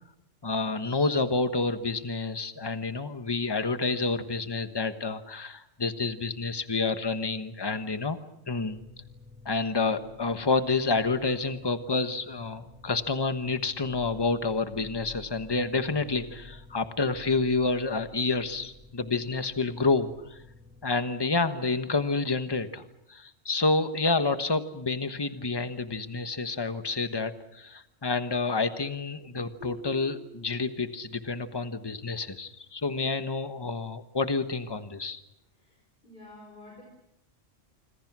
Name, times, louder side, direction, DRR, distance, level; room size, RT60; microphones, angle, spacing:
voice 1, 0.4-8.2 8.5-8.8 9.4-20.4 20.8-35.2, left 3 dB, 20° left, 9 dB, 1.2 m, -29 dB
sound 1, 8.5-21.0, left 2 dB, 5° right, 2.8 m, -51 dB
sound 2, 29.6-31.3, left 2 dB, 70° right, 3.7 m, -46 dB
voice 2, 35.5-36.8, left 2 dB, 40° left, 0 dB, 5.5 m, -50 dB
26.5 x 26.0 x 6.2 m, 0.81 s
omnidirectional pair, 1.3 m